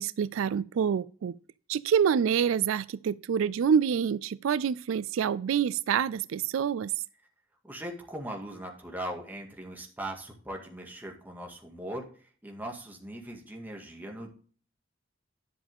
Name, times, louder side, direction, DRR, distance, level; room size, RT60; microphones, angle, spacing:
voice 1, 0.0-1.4 1.7-6.9, right 7 dB, 80° right, 0.3 m, -27 dB
voice 2, 7.6-14.3, right 1 dB, 10° right, 2.0 m, -40 dB
11.0 x 7.2 x 3.6 m
head